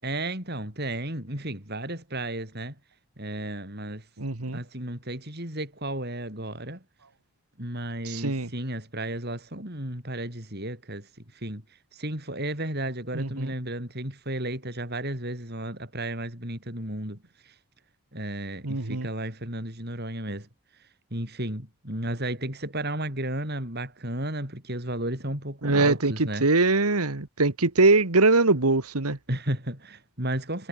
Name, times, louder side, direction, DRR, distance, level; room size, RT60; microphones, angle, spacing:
voice 1, 0.0-2.7 3.2-4.0 4.5-6.8 7.6-11.6 11.9-17.2 17.4-17.5 18.1-20.5 21.1-26.5 29.3-30.7, right 1 dB, 45° right, 7.6 m, -33 dB
voice 2, 4.2-4.6 8.0-8.5 13.1-13.5 18.6-19.1 25.6-29.2, right 3 dB, 85° right, 1.8 m, -22 dB
head